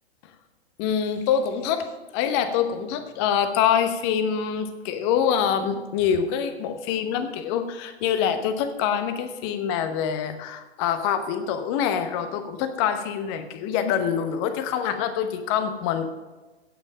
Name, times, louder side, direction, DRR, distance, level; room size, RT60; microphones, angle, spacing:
voice 1, 0.8-1.9 2.1-16.1, left 8 dB, 25° left, 10 dB, 0.9 m, -25 dB
16.0 x 5.5 x 6.2 m, 1.2 s
figure-of-eight pair, 125°, 32 cm